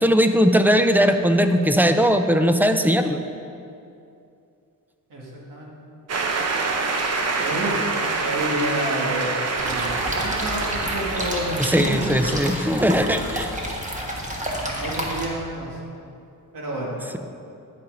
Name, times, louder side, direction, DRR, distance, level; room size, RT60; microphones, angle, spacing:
voice 1, 0.0-3.2 11.6-13.5, equal, 5° right, 8 dB, 0.4 m, -19 dB
voice 2, 5.1-5.7 7.4-12.2 14.8-15.8 16.5-16.9, right 1 dB, 70° right, -4 dB, 2.3 m, -29 dB
sound 1, 6.1-12.9, right 3 dB, 45° right, 0.8 m, -26 dB
sound 2, 9.6-15.3, equal, 20° right, 1.3 m, -30 dB
10.5 x 8.7 x 3.8 m, 2.6 s
cardioid pair, 125°, 35 cm